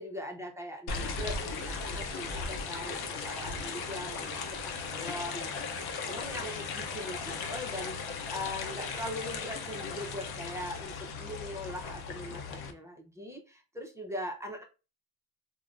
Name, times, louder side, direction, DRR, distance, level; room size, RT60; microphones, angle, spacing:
voice 1, 0.0-8.0 8.3-14.6, left 1 dB, 5° right, 1 dB, 0.4 m, -41 dB
sound 1, 0.9-12.7, left 4 dB, 55° left, 0.7 m, -37 dB
3.2 x 2.1 x 2.4 m, 0.30 s
cardioid pair, 115°, 45 cm